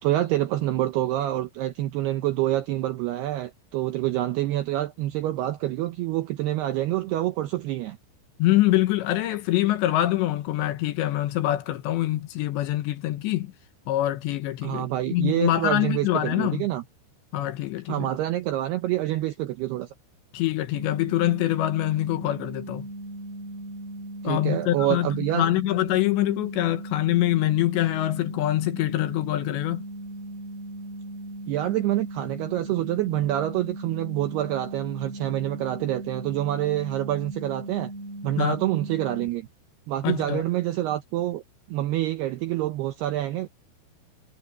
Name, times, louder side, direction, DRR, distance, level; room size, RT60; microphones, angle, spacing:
voice 1, 0.0-8.0 14.6-16.8 17.9-19.9 24.2-25.5 31.5-37.9 38.2-39.5 39.9-41.4 41.7-43.5, right 14 dB, 80° right, 2.3 m, -27 dB
voice 2, 8.4-13.5 13.9-16.7 17.3-18.1 20.3-22.9 24.2-25.1 25.3-29.8 38.4-38.6 40.0-40.4, left 15 dB, 75° left, 3.0 m, -24 dB
sound 1, 20.7-39.3, right 1 dB, 5° left, 5.5 m, -38 dB
omnidirectional pair, 5.8 m